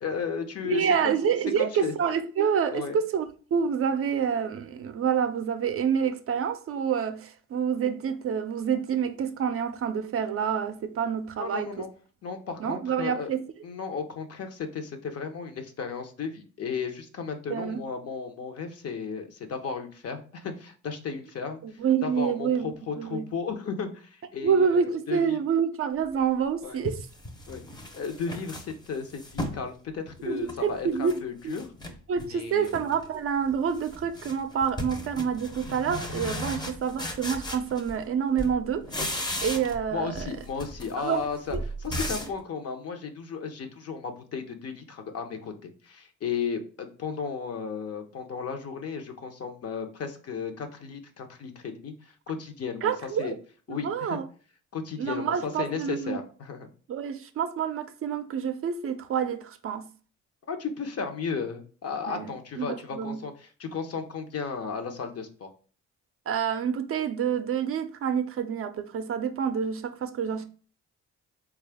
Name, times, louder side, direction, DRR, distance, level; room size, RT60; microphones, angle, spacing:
voice 1, 0.0-1.1 1.6-1.9 2.7-3.0 11.4-11.9 12.2-13.3 13.6-21.6 22.0-25.4 26.6-26.8 27.5-27.6 27.9-31.7 32.3-32.7 39.9-52.9 53.2-53.3 53.7-54.2 54.7-56.7 60.5-65.5, left 5 dB, 55° left, 0.8 m, -34 dB
voice 2, 0.6-11.7 12.6-13.4 17.5-17.8 21.6-23.3 24.4-27.1 30.3-31.1 31.4-31.5 32.1-38.9 39.4-40.3 41.0-41.2 41.5-41.6 52.8-53.3 53.8-54.2 55.0-56.2 56.9-59.9 62.1-63.2 66.3-70.4, right 7 dB, 50° right, 0.4 m, -28 dB
sound 1, 26.2-26.3 26.8-29.7 30.1-31.2 31.5-32.3 32.6-33.1 33.4-38.1 38.4-39.9 40.1-42.4, left 1 dB, 15° left, 0.6 m, -36 dB
3.7 x 2.4 x 3.4 m
cardioid pair, 90°, 30 cm